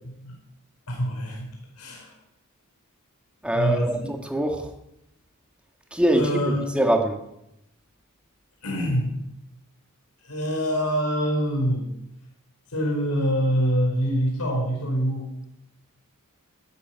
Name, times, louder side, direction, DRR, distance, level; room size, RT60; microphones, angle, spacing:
voice 1, 0.9-2.1 3.5-4.1 6.1-6.8 8.6-9.2 10.2-11.9 12.7-15.3, equal, 90° left, 1 dB, 4.8 m, -25 dB
voice 2, 3.4-4.7 5.9-7.2, right 1 dB, 5° right, 3 dB, 1.9 m, -23 dB
13.5 x 10.5 x 9.4 m, 0.85 s
head